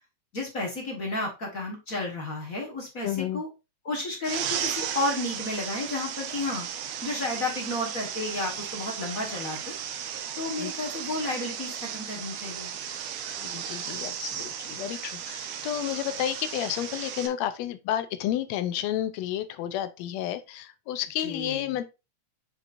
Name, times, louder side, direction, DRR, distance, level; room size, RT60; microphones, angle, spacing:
voice 1, 0.3-3.5 3.8-6.7 7.0-9.6 10.4-12.7 21.2-21.7, left 2 dB, 45° left, 1.1 m, -32 dB
voice 2, 3.0-3.4 10.6-10.7 13.4-21.9, left 11 dB, 75° left, 1.6 m, -31 dB
sound 1, 4.2-17.3, right 8 dB, 70° right, 1.9 m, -35 dB
7.4 x 5.2 x 2.5 m
omnidirectional pair, 3.5 m